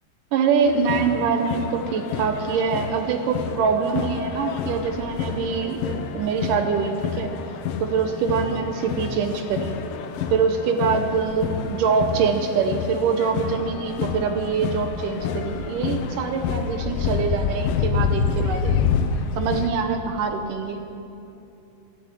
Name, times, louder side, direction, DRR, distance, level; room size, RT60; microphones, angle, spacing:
voice 1, 0.3-7.3 7.8-9.8 10.3-18.7 19.4-20.8, right 5 dB, 70° right, 6 dB, 2.3 m, -24 dB
sound 1, 0.7-19.7, left 6 dB, 75° left, 2.4 m, -28 dB
13.0 x 11.5 x 9.1 m, 2.8 s
omnidirectional pair, 4.2 m